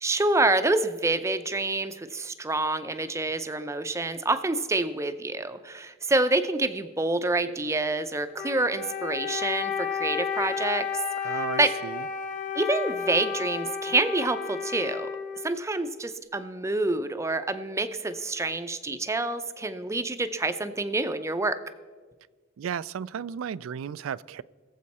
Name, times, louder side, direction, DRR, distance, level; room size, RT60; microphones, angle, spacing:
voice 1, 0.0-10.9 11.2-11.7 12.5-15.1 15.4-21.6, right 2 dB, 15° right, 0.5 m, -27 dB
Wind instrument woodwind instrument, 8.3-15.9, left 6 dB, 40° left, 1.5 m, -32 dB
voice 2, 11.2-12.1 22.6-24.4, right 8 dB, 90° right, 0.3 m, -34 dB
21.0 x 7.5 x 4.2 m
head